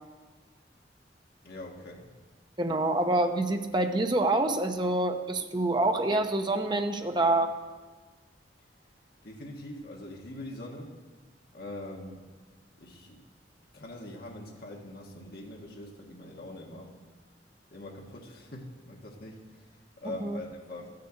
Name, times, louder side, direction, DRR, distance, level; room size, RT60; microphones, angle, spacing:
voice 1, 1.4-2.1 9.2-11.0 11.5-12.2 12.8-13.2 13.7-16.9 17.7-19.5 20.0-20.9, left 1 dB, 60° left, -1 dB, 1.6 m, -43 dB
voice 2, 2.6-7.5 20.0-20.4, right 2 dB, 25° right, 5 dB, 0.8 m, -27 dB
13.0 x 6.7 x 7.9 m, 1.4 s
head